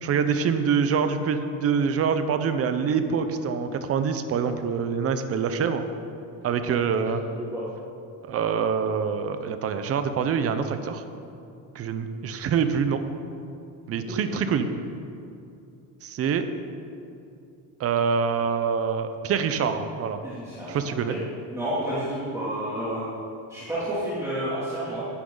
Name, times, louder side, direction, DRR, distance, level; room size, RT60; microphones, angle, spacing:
voice 1, 0.0-5.8 6.4-7.2 8.2-11.0 11.7-13.0 13.9-14.7 16.0-16.5 17.8-20.2 20.7-21.2, right 6 dB, 35° right, 9 dB, 0.8 m, -25 dB
voice 2, 7.3-7.6 14.2-14.4 20.2-20.8 21.1-21.2 21.5-23.0 23.5-25.0, right 1 dB, 10° right, -10 dB, 2.8 m, -30 dB
16.0 x 11.5 x 4.0 m, 2.6 s
cardioid pair, 150°, 39 cm